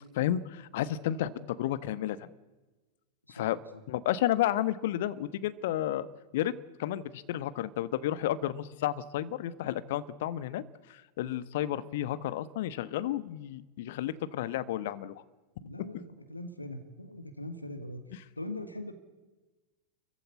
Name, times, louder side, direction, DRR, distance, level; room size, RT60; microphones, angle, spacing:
voice 1, 0.1-2.3 3.3-3.6 3.9-6.1 6.3-6.5 6.8-10.6 10.9-15.2, left 12 dB, 55° left, 16 dB, 1.1 m, -32 dB
voice 2, 3.3-3.8 15.6-18.0 18.4-18.9, left 1 dB, 85° left, 11 dB, 1.9 m, -41 dB
28.5 x 15.0 x 9.5 m, 1.2 s
figure-of-eight pair, 90°, 0 cm